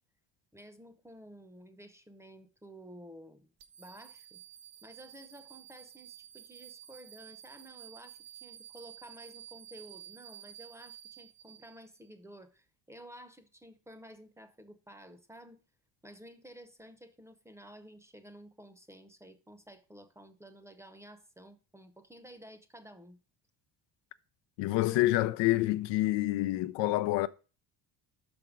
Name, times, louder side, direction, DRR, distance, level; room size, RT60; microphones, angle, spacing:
voice 1, 0.5-3.5 3.8-4.4 4.8-15.6 16.0-23.2, equal, 5° right, 0.8 m, -52 dB
sound 1, 3.6-12.1, right 11 dB, 65° right, 1.1 m, -52 dB
voice 2, 24.6-27.3, left 16 dB, 80° left, 0.6 m, -27 dB
5.8 x 5.2 x 6.0 m
cardioid pair, 115°, 42 cm